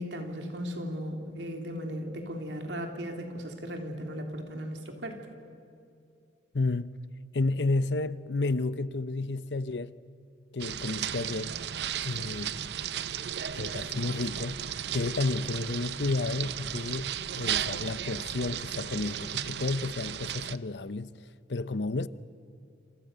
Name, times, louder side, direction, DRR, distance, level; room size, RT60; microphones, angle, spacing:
voice 1, 0.0-5.3, equal, 85° right, 3.4 m, -36 dB
voice 2, 6.5-6.9 7.3-9.9 10.5-11.5 12.0-12.6 13.5-14.6 14.9-22.1, left 3 dB, 75° left, 0.8 m, -31 dB
sound 1, 10.6-20.6, right 9 dB, 70° right, 0.7 m, -35 dB
28.0 x 27.5 x 6.9 m
head